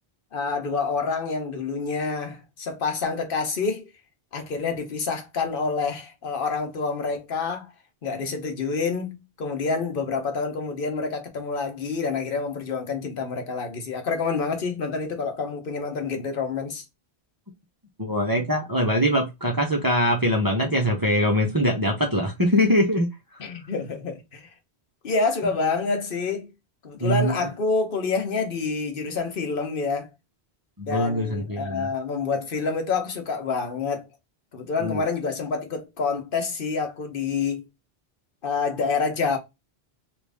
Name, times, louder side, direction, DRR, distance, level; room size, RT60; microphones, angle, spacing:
voice 1, 0.3-3.9 4.3-7.7 8.0-16.8 23.4-24.5 25.0-26.5 26.8-30.1 30.8-34.1 34.5-37.6 38.4-39.4, left 4 dB, 55° left, 1.1 m, -27 dB
voice 2, 18.0-23.1 27.0-27.3 30.8-31.9 34.8-35.0, equal, 25° right, 0.6 m, -22 dB
3.1 x 2.6 x 3.3 m
omnidirectional pair, 1.1 m